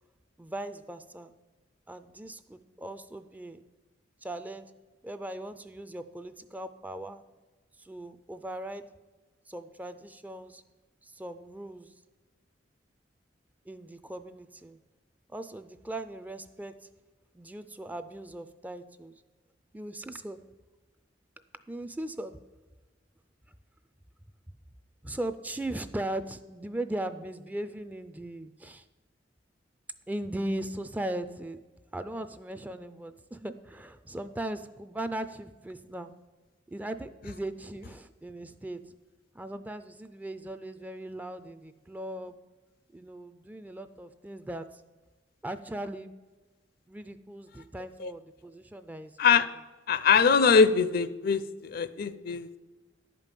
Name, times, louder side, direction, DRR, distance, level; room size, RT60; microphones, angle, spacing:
voice 1, 0.4-1.3 1.9-3.6 4.2-4.7 5.0-7.2 7.8-8.8 9.5-10.6 11.0-11.9 13.7-14.8 15.3-16.7 17.3-19.2 19.7-20.4 21.7-22.4 25.0-28.9 30.1-31.6 31.9-36.1 36.7-38.8 39.3-42.4 42.9-44.8 45.4-46.1 46.9-49.4, right 1 dB, 10° right, 11 dB, 0.3 m, -38 dB
voice 2, 49.9-52.6, left 5 dB, 55° left, 14 dB, 0.5 m, -23 dB
11.0 x 5.2 x 7.4 m, 1.3 s
head